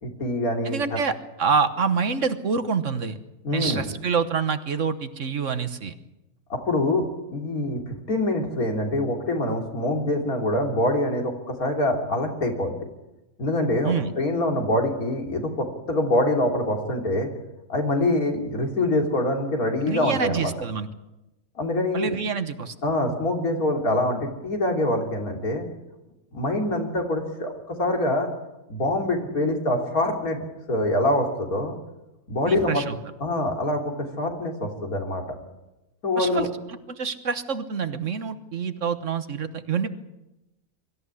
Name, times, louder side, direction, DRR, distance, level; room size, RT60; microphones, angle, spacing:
voice 1, 0.0-1.0 3.4-3.8 6.5-7.0 7.3-12.9 13.4-17.3 17.7-20.5 21.6-22.2 22.8-25.7 26.3-28.3 28.7-30.4 30.7-31.7 32.3-32.8 33.2-33.8 34.2-35.2 36.0-36.5, left 1 dB, 75° left, 2 dB, 3.6 m, -25 dB
voice 2, 0.6-3.2 3.5-5.9 13.8-14.1 19.8-20.9 21.9-22.7 32.5-33.0 36.2-36.5 36.9-39.9, right 5 dB, 60° right, 11 dB, 1.5 m, -26 dB
23.5 x 14.0 x 9.7 m, 0.97 s
omnidirectional pair, 1.5 m